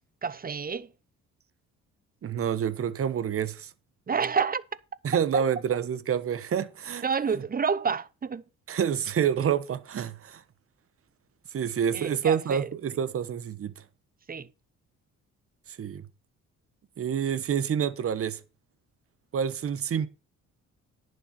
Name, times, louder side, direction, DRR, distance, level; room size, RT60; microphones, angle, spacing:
voice 1, 0.2-0.9 4.1-4.6 5.3-5.4 7.0-8.4 11.9-12.7 14.3-14.5, right 6 dB, 30° right, 0.8 m, -28 dB
voice 2, 2.2-3.7 5.0-7.0 8.7-10.4 11.5-13.7 15.8-16.0 17.0-18.4 19.3-20.1, right 8 dB, 50° right, 1.1 m, -28 dB
10.5 x 6.8 x 5.9 m
cardioid pair, 90°, 30 cm